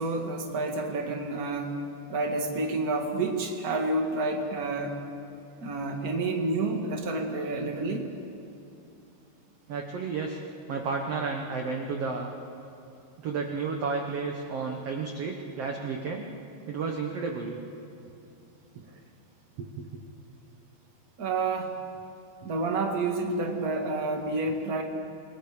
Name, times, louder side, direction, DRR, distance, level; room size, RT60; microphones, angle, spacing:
voice 1, 0.0-1.7 2.1-5.0 5.6-8.1 21.2-21.7 22.4-24.8, right 2 dB, 35° right, 2 dB, 1.5 m, -29 dB
voice 2, 9.7-10.4 10.7-12.3 13.2-16.3 16.7-17.6 19.6-20.0, right 4 dB, 65° right, 2 dB, 1.5 m, -32 dB
28.5 x 20.0 x 5.1 m, 2.7 s
omnidirectional pair, 4.5 m